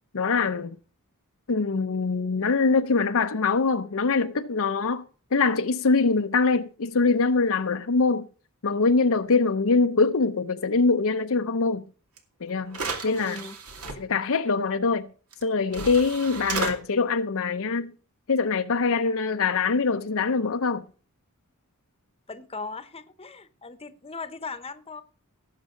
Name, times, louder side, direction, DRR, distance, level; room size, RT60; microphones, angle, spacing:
voice 1, 0.1-0.8 1.5-5.0 5.3-8.3 8.6-11.9 12.4-13.4 14.0-15.1 15.4-17.9 18.3-20.9, left 4 dB, 65° left, 0.7 m, -23 dB
sound 1, 12.2-12.3 12.7-14.0 15.3-15.4 15.7-16.7, right 4 dB, 75° right, 2.4 m, -33 dB
voice 2, 13.1-13.6 22.3-25.0, left 3 dB, 25° left, 1.0 m, -38 dB
18.0 x 7.5 x 3.8 m
head